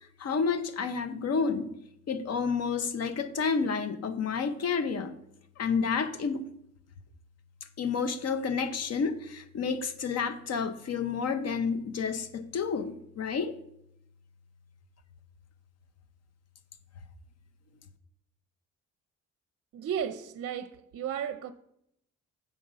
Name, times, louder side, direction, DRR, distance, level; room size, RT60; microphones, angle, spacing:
voice 1, 0.2-1.7 2.1-5.1 5.6-6.5 7.8-13.5, left 5 dB, 55° left, 0.9 m, -30 dB
voice 2, 19.7-21.5, right 8 dB, 50° right, 0.6 m, -34 dB
7.7 x 5.0 x 5.5 m
cardioid pair, 90°, 30 cm